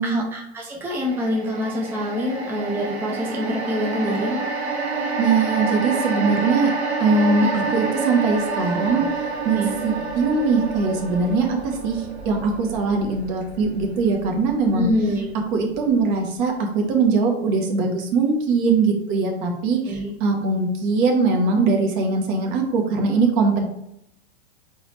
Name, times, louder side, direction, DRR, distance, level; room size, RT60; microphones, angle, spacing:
voice 1, 0.0-4.4 7.4-7.5 9.5-9.8 14.7-15.3 19.9-20.1, left 1 dB, 5° right, -3 dB, 0.6 m, -25 dB
sound 1, 1.0-15.4 15.7-15.9, right 3 dB, 85° right, 1.4 m, -28 dB
voice 2, 5.2-6.7 7.0-9.1 9.4-14.9 15.5-23.6, right 4 dB, 50° right, 2 dB, 1.1 m, -21 dB
4.0 x 4.0 x 3.1 m, 0.78 s
supercardioid pair, 135°, 32 cm